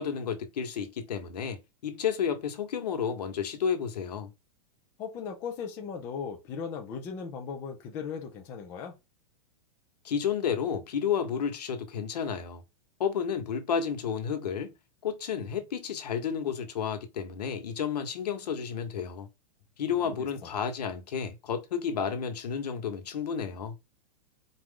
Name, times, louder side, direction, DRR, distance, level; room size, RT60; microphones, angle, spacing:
voice 1, 0.0-4.3 10.0-12.6 13.0-14.7 15.0-19.3 19.8-23.8, left 7 dB, 80° left, 1.2 m, -31 dB
voice 2, 5.0-9.0 20.0-20.1, left 6 dB, 10° left, 0.4 m, -37 dB
4.5 x 2.5 x 3.7 m
supercardioid pair, 180°, 20 cm